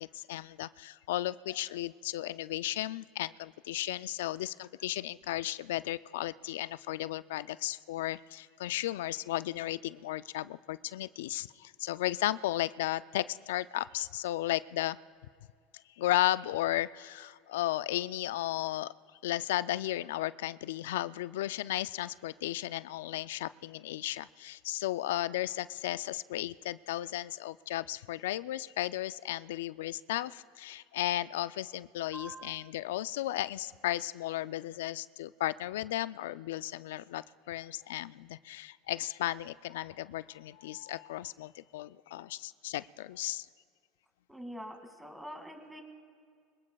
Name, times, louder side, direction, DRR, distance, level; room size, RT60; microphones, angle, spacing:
voice 1, 0.0-15.0 16.0-18.9 19.2-43.5, left 15 dB, 85° left, 17 dB, 0.3 m, -34 dB
voice 2, 32.1-32.7 44.3-45.8, equal, 5° right, 4 dB, 2.2 m, -45 dB
26.0 x 19.5 x 2.3 m, 2.1 s
supercardioid pair, 95°, 0 cm